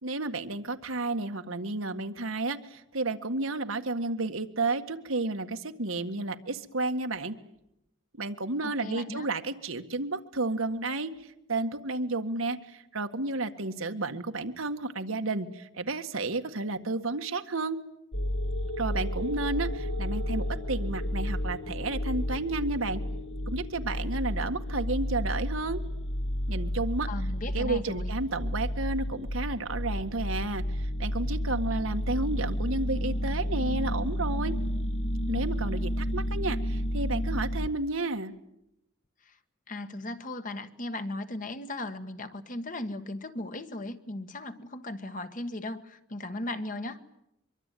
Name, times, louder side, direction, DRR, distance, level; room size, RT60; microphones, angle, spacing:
voice 1, 0.0-7.4 8.2-11.1 11.5-17.8 18.8-23.0 23.5-25.8 26.5-27.1 27.5-34.5 35.3-38.4, right 2 dB, 90° right, 7 dB, 1.8 m, -32 dB
voice 2, 8.6-9.3 27.1-28.1 39.2-39.4 39.7-47.0, left 2 dB, 40° left, 9 dB, 1.5 m, -37 dB
sound 1, 18.1-37.7, equal, 60° left, 1.7 m, -31 dB
24.5 x 23.5 x 9.3 m, 0.83 s
head